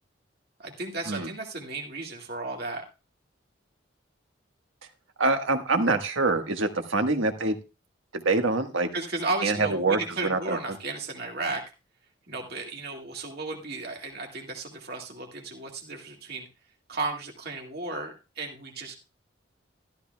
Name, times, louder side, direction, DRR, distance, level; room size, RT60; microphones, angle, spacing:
voice 1, 0.6-2.8 8.9-11.6 12.3-16.5 16.9-18.9, right 3 dB, 50° right, 1 dB, 2.0 m, -34 dB
voice 2, 5.2-7.6 8.1-8.9 9.4-10.7, right 3 dB, 85° right, 5 dB, 1.4 m, -25 dB
13.5 x 13.0 x 2.3 m, 0.30 s
head